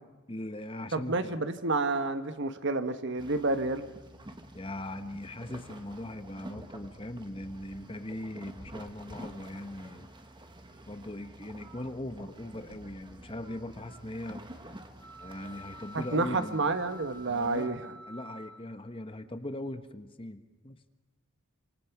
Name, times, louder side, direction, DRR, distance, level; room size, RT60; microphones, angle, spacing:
voice 1, 0.3-1.4 4.5-10.1 10.9-14.4 15.2-16.7 17.3-17.7 18.1-20.8, left 1 dB, 25° left, 1.1 m, -40 dB
voice 2, 0.9-3.8 15.9-17.8, right 3 dB, 55° right, 1.3 m, -29 dB
sound 1, 3.2-17.7, right 1 dB, 20° right, 1.6 m, -49 dB
sound 2, 15.0-19.1, right 1 dB, 5° left, 2.0 m, -49 dB
28.0 x 26.5 x 6.0 m
head